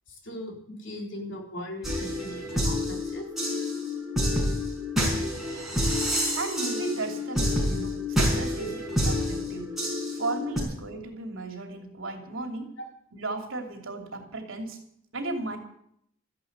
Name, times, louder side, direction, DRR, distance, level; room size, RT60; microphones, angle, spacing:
voice 1, 0.1-3.3 12.8-12.9, left 1 dB, 60° left, 1 dB, 4.0 m, -39 dB
sound 1, 1.8-10.6, left 1 dB, ahead, 5.0 m, -28 dB
voice 2, 6.3-9.7 10.1-12.7 13.1-14.8 15.1-15.6, right 3 dB, 70° right, 4 dB, 2.9 m, -35 dB
14.0 x 11.0 x 8.1 m, 0.71 s
head